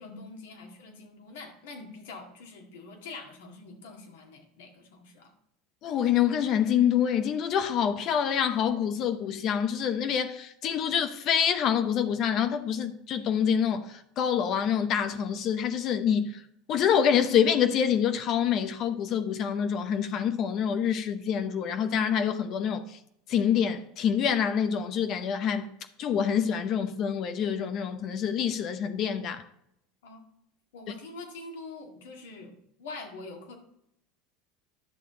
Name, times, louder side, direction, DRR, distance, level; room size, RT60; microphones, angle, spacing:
voice 1, 0.0-5.3 30.0-30.2 30.7-32.5 32.8-33.5, left 3 dB, 80° left, 2.0 m, -44 dB
voice 2, 5.8-16.4 16.7-23.0 23.3-25.7 26.0-29.4, left 8 dB, 50° left, 0.8 m, -26 dB
10.5 x 6.7 x 3.8 m
hypercardioid pair, 90°, 0 cm